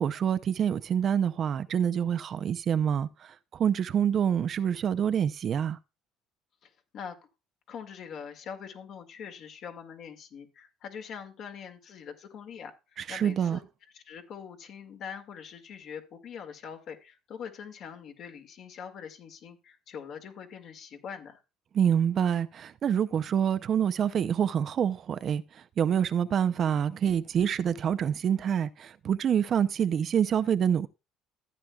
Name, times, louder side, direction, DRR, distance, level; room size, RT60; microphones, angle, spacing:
voice 1, 0.0-5.8 13.1-13.6 21.7-30.9, right 8 dB, 40° right, 0.5 m, -26 dB
voice 2, 6.6-7.2 7.7-13.6 13.9-21.4, left 7 dB, 50° left, 2.1 m, -43 dB
14.5 x 9.4 x 2.3 m
cardioid pair, 130°, 0 cm